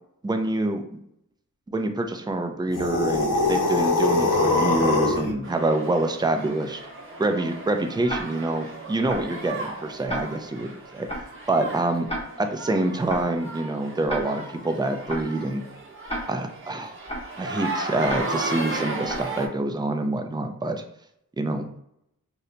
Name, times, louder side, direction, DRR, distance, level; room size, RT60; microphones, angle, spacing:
voice 1, 0.2-1.0 1.7-6.8 7.2-10.7 10.9-11.1 11.5-12.1 12.4-15.6 16.3-16.9 17.4-20.8 21.4-21.7, right 2 dB, 15° right, 6 dB, 0.3 m, -26 dB
sound 1, 2.7-5.3, left 3 dB, 70° left, 0.7 m, -22 dB
sound 2, 5.4-19.5, right 2 dB, 40° right, 0.8 m, -35 dB
Tick-tock, 8.1-8.2 9.1-9.2 10.1-10.2 11.1-11.2 12.1-12.2 13.1-13.2 14.1-14.2 15.1-15.2 16.1-16.2 17.1-17.2 18.1-18.2 19.1-19.2, equal, 20° left, 0.9 m, -30 dB
2.7 x 2.1 x 3.8 m, 0.76 s
wide cardioid pair, 75°, 33 cm